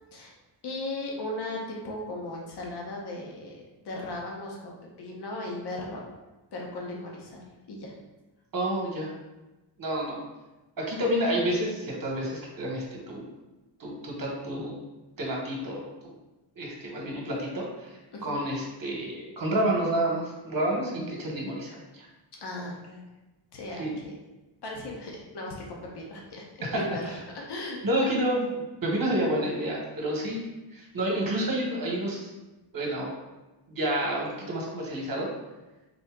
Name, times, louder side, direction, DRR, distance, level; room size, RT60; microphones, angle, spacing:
voice 1, 0.6-6.1 6.5-7.9 18.1-18.4 22.4-23.0 23.5-24.2 24.6-27.8, left 2 dB, 55° left, -2 dB, 0.9 m, -37 dB
voice 2, 8.5-9.1 9.8-10.2 10.8-13.3 13.8-14.7 15.2-16.1 16.6-22.1 23.8-23.9 26.6-26.8 27.8-30.4 30.7-32.3 32.7-33.1 33.7-35.3, right 1 dB, 45° right, -2 dB, 1.1 m, -29 dB
4.0 x 2.8 x 3.6 m, 1.1 s
wide cardioid pair, 150°, 47 cm